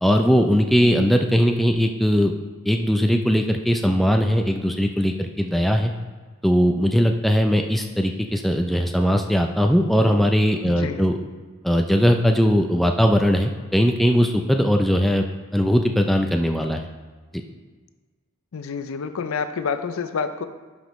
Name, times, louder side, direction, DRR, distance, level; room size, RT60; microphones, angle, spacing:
voice 1, 0.0-2.3 2.7-5.9 6.4-11.2 11.6-15.3 15.5-16.8, equal, ahead, 4 dB, 0.3 m, -19 dB
voice 2, 10.6-11.1 18.5-20.4, left 5 dB, 70° left, 10 dB, 0.5 m, -28 dB
11.0 x 5.1 x 3.1 m, 1.4 s
head